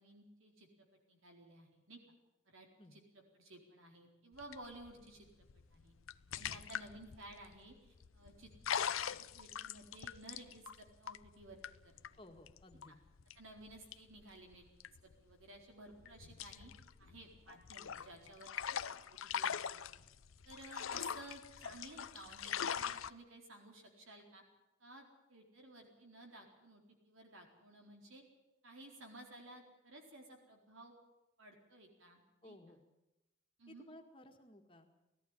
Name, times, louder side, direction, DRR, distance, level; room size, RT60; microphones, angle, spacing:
voice 1, 0.0-2.0 2.5-3.0 3.4-5.9 6.3-11.9 12.9-13.0 13.3-14.6 15.0-16.7 17.0-18.8 19.1-19.8 20.4-24.4 24.8-28.2 28.6-30.9 31.4-32.8 33.6-33.9, right 1 dB, 85° right, 2 dB, 4.3 m, -56 dB
sound 1, 4.3-15.6 15.9-23.1, left 8 dB, 90° left, 0.7 m, -43 dB
voice 2, 12.2-13.0 32.4-32.8 33.7-34.9, left 1 dB, 25° left, 4 dB, 1.8 m, -57 dB
19.0 x 14.0 x 10.0 m, 0.99 s
head